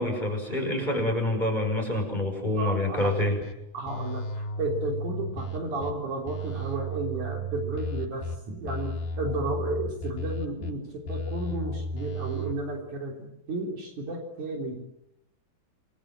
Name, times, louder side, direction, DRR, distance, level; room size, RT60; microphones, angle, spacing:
voice 1, 0.0-3.4, left 1 dB, 10° left, 4 dB, 5.8 m, -27 dB
voice 2, 2.6-3.1 3.7-14.8, right 2 dB, 60° right, 2 dB, 5.0 m, -33 dB
sound 1, 3.0-3.5 3.9-5.9 6.3-8.4 8.7-10.7 11.1-12.5, equal, 85° left, 4.3 m, -33 dB
28.5 x 22.5 x 7.6 m, 0.83 s
omnidirectional pair, 4.0 m